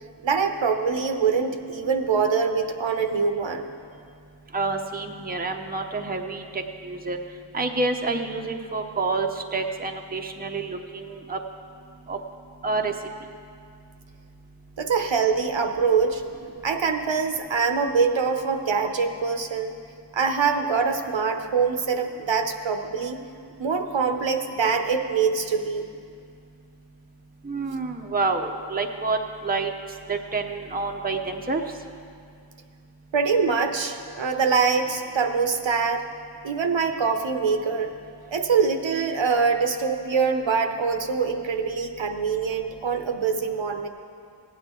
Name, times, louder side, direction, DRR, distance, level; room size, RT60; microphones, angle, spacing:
voice 1, 0.2-3.7 14.8-16.2 16.6-19.8 20.1-23.2 23.6-25.9 33.1-36.1 36.4-37.9 38.3-43.9, right 5 dB, 70° right, 5 dB, 0.8 m, -24 dB
voice 2, 4.5-7.2 7.5-11.4 12.1-12.2 12.6-12.9 27.4-29.2 29.4-29.7 30.1-31.6, right 3 dB, 20° right, 3 dB, 0.7 m, -28 dB
16.0 x 9.0 x 3.8 m, 2.3 s
wide cardioid pair, 70°, 48 cm